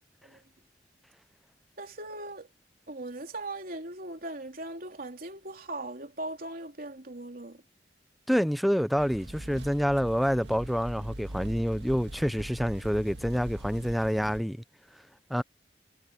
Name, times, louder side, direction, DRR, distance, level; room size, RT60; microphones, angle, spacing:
voice 1, 1.8-2.5 2.9-7.6, right 2 dB, 55° right, 3.6 m, -39 dB
voice 2, 8.3-14.6 15.3-15.4, equal, ahead, 0.6 m, -27 dB
sound 1, 9.0-14.4, right 1 dB, 80° right, 1.8 m, -42 dB
head